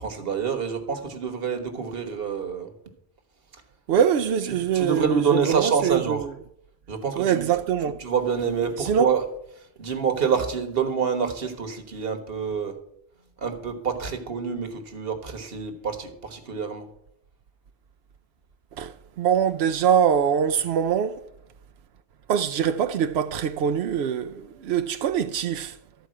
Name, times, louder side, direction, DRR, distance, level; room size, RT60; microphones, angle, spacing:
voice 1, 0.0-2.7 4.5-6.3 6.9-7.5 8.0-9.2 9.8-12.8 13.4-16.9, right 6 dB, 65° right, 1.5 m, -27 dB
voice 2, 3.9-6.3 7.2-8.0 8.8-9.1 18.8-21.2 22.3-25.8, right 8 dB, 85° right, 0.8 m, -23 dB
13.0 x 4.7 x 7.5 m
omnidirectional pair, 1.1 m